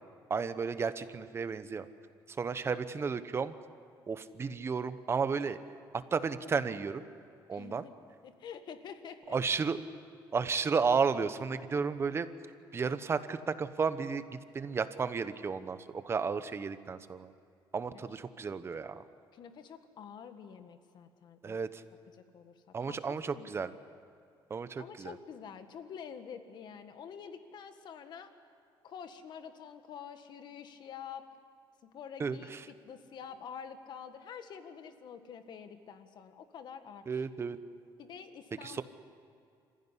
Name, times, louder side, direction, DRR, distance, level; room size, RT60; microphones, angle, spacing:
voice 1, 0.3-1.9 2.4-3.5 4.1-5.6 6.1-7.0 7.5-7.8 9.3-9.8 10.3-12.3 12.7-17.3 17.7-19.0 21.4-21.8 22.7-23.7 24.5-25.1 32.2-32.6 37.1-37.6 38.6-38.8, right 5 dB, 30° right, 12 dB, 1.0 m, -33 dB
voice 2, 7.5-7.9 8.2-9.6 17.9-18.4 19.3-21.6 22.1-23.6 24.8-28.3 28.8-31.3 31.8-37.2 38.0-38.8, left 7 dB, 55° left, 8 dB, 1.7 m, -48 dB
27.0 x 15.5 x 9.9 m, 2.4 s
cardioid pair, 135°, 9 cm